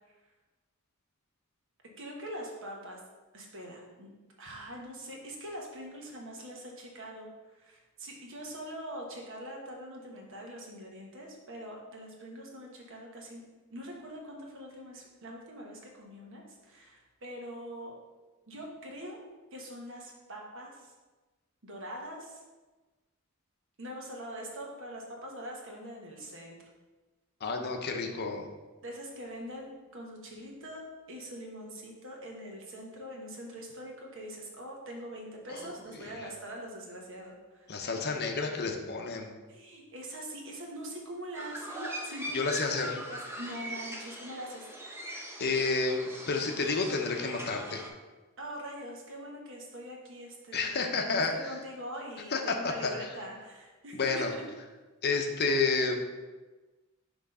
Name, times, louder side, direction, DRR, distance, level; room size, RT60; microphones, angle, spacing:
voice 1, 2.0-3.0 3.3-4.1 4.4-13.4 13.7-18.0 18.5-19.2 19.5-20.9 21.6-22.4 23.8-26.6 28.8-37.9 39.5-44.7 48.4-54.5, equal, 60° right, 0 dB, 1.2 m, -43 dB
voice 2, 27.4-28.5 35.5-35.7 37.7-39.3 42.3-43.0 45.4-47.8 50.5-51.5 52.3-52.9 53.9-54.3 55.0-56.0, left 4 dB, 50° left, 3 dB, 0.7 m, -30 dB
sound 1, 41.3-47.9, equal, 10° right, 0.6 m, -41 dB
6.0 x 3.0 x 5.4 m, 1.2 s
head